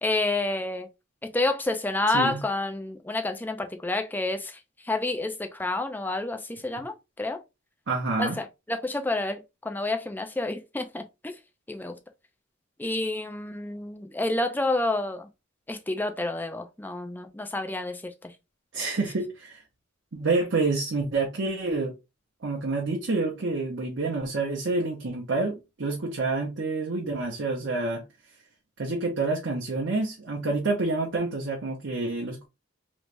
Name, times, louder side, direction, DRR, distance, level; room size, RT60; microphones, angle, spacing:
voice 1, 0.0-0.9 1.2-4.6 4.8-7.4 8.2-11.3 11.7-12.0 12.8-15.3 15.7-18.3, left 2 dB, 10° left, 0.4 m, -29 dB
voice 2, 2.1-2.4 7.9-8.4 18.7-19.6 20.1-21.9 22.4-28.0 28.8-32.5, right 3 dB, 60° right, 0.8 m, -28 dB
3.3 x 3.0 x 2.5 m
head